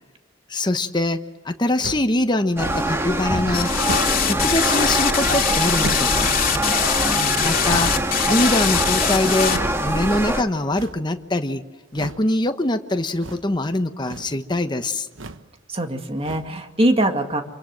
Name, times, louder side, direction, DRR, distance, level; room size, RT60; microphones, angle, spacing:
voice 1, 0.5-3.7 4.2-6.3 7.4-7.9 8.2-11.6 11.9-15.1, left 1 dB, 25° left, 7 dB, 1.1 m, -23 dB
sound 1, 1.8-2.2 2.7-3.1 3.8-4.3 5.8-6.2 7.7-8.1 9.4-9.8 10.7-11.1 11.9-12.3 13.2-13.6 13.9-14.4 15.1-15.5 16.2-16.6, right 2 dB, 90° right, 1.3 m, -34 dB
sound 2, 2.6-10.4, right 1 dB, 15° right, 1.7 m, -24 dB
sound 3, 3.5-9.6, left 8 dB, 45° left, 2.7 m, -22 dB
voice 2, 7.1-7.7 15.7-17.4, right 1 dB, 30° right, 5 dB, 2.3 m, -23 dB
26.5 x 24.5 x 7.7 m, 1.2 s
head